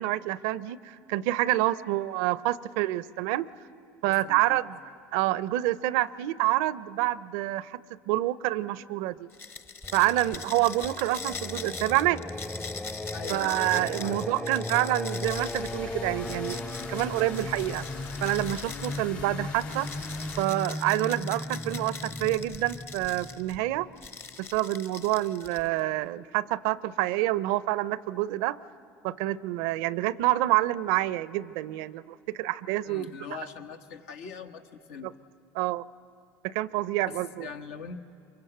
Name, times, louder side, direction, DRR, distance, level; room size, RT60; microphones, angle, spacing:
voice 1, 0.0-3.5 4.0-4.7 5.1-7.8 8.1-9.3 9.9-12.2 13.3-16.6 16.9-17.9 18.2-19.9 20.4-23.9 24.4-28.6 29.0-33.1 35.5-35.8 36.4-37.5, right 16 dB, 80° right, 19 dB, 0.5 m, -27 dB
voice 2, 4.1-4.7 10.2-10.4 13.1-14.5 32.9-35.1 37.0-38.1, left 6 dB, 85° left, 6 dB, 1.2 m, -42 dB
sound 1, 9.3-19.1 19.6-23.6 24.0-25.8, left 4 dB, 30° left, 0.9 m, -42 dB
Singing, 9.8-24.6, left 1 dB, 10° left, 0.5 m, -37 dB
sound 2, 15.2-20.5, left 6 dB, 65° left, 2.6 m, -43 dB
24.5 x 22.5 x 7.9 m, 2.4 s
supercardioid pair, 95°, 7 cm